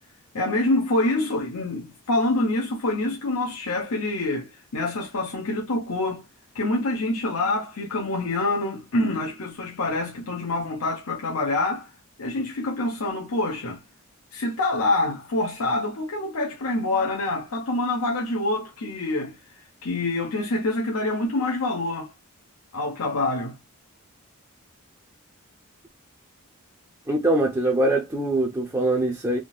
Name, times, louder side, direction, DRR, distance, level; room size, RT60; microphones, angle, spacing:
voice 1, 0.3-6.2 6.5-11.9 12.2-13.8 14.3-22.1 22.7-23.6, left 2 dB, 80° left, 0.8 m, -26 dB
voice 2, 27.1-29.4, right 1 dB, 15° right, 0.5 m, -23 dB
3.6 x 2.6 x 2.3 m
head